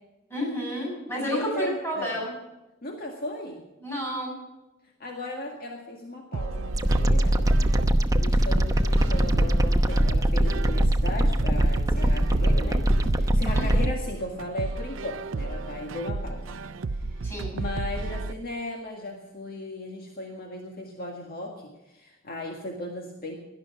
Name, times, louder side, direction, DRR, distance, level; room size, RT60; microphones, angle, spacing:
voice 1, 0.3-2.3 3.8-4.4 13.5-13.9 17.2-17.5, equal, 10° left, -3 dB, 7.5 m, -31 dB
voice 2, 1.1-2.1 2.8-3.6 5.0-7.5 8.2-16.6 16.9-23.4, left 1 dB, 50° left, 1 dB, 1.9 m, -36 dB
sound 1, 6.3-18.3, right 3 dB, 70° right, 0.6 m, -33 dB
sound 2, 6.7-13.8, right 1 dB, 20° right, 0.9 m, -22 dB
17.5 x 12.0 x 6.0 m, 1.0 s
head